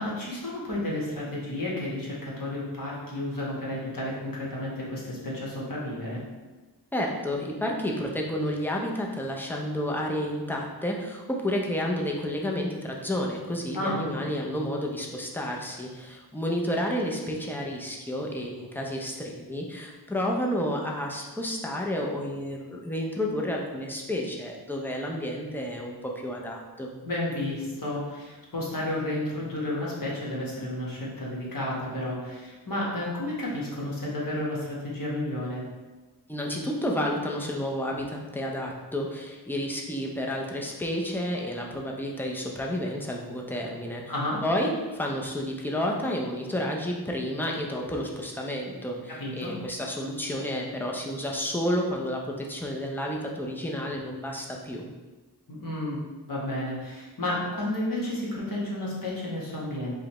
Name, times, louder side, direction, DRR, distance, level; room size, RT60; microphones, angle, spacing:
voice 1, 0.0-6.2 13.7-14.0 27.0-35.6 44.1-44.4 49.1-49.5 55.5-60.0, left 1 dB, 50° left, -5 dB, 1.2 m, -32 dB
voice 2, 6.9-26.9 36.3-44.1 44.4-54.9, equal, 5° left, -1 dB, 0.5 m, -31 dB
4.9 x 2.2 x 3.0 m, 1.2 s
wide cardioid pair, 65°, 41 cm